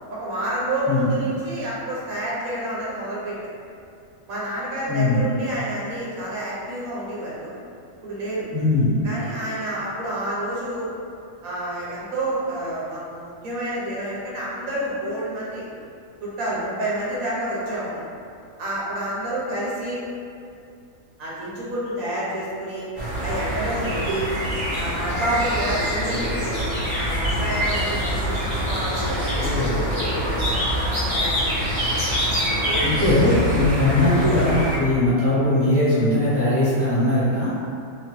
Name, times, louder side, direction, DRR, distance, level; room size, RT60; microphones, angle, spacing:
voice 1, 0.1-3.4 4.3-7.5 8.0-8.5 9.0-10.9 11.4-15.7 16.2-18.0 18.6-20.0 21.2-22.9 23.2-24.3 24.7-26.2 26.9-29.4 30.0-30.2 30.5-31.5 32.7-32.9 33.5-33.7, right 1 dB, 90° right, -7 dB, 1.2 m, -29 dB
voice 2, 4.9-5.2 8.5-9.0 29.4-29.8 32.8-37.5, left 1 dB, 10° left, -13 dB, 0.9 m, -20 dB
sound 1, 22.9-34.8, equal, 25° right, 0.7 m, -25 dB
3.0 x 2.1 x 3.0 m, 2.4 s
omnidirectional pair, 1.4 m